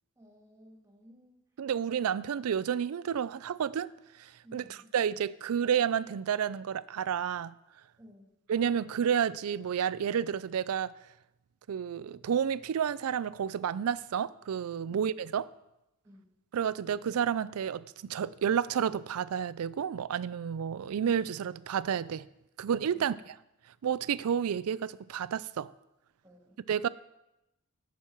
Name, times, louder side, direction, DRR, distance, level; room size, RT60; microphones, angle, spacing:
voice 1, 0.2-1.4 4.4-4.9 8.0-8.3 14.9-15.0 16.0-16.2 22.9-23.2 26.2-26.6, equal, 15° right, 1.7 m, -56 dB
voice 2, 1.6-3.9 4.2-4.6 4.9-7.5 8.5-10.9 11.7-15.4 16.5-22.3 22.6-23.1 23.8-25.7 26.7-26.9, right 8 dB, 80° right, 0.4 m, -30 dB
15.5 x 6.3 x 4.5 m
head